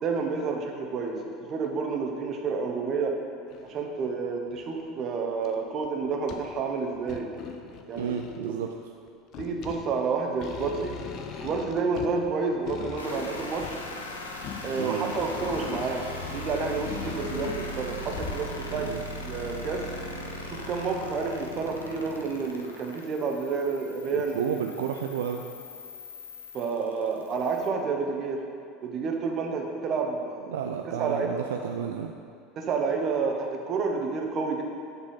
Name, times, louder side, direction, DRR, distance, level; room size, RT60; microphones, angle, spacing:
voice 1, 0.0-3.1 3.6-7.3 7.9-8.6 9.4-10.9 11.4-13.8 14.6-19.8 20.5-24.6 26.5-28.4 28.8-31.4 32.6-34.6, right 4 dB, 45° right, 2 dB, 1.1 m, -30 dB
sound 1, 1.6-1.7 2.3-2.4 3.5-3.9 4.5-5.0 5.4-5.5 5.8-6.6 7.0-8.5 9.1-18.9 19.4-19.6, left 6 dB, 50° left, 0.6 m, -40 dB
voice 2, 8.0-8.7 14.8-15.1 18.7-19.0 24.1-25.4 30.5-32.1, right 8 dB, 75° right, 3 dB, 0.3 m, -32 dB
sound 2, 13.0-27.7, left 1 dB, 85° left, 0.7 m, -39 dB
8.7 x 4.1 x 5.6 m, 2.5 s
figure-of-eight pair, 75°, 0 cm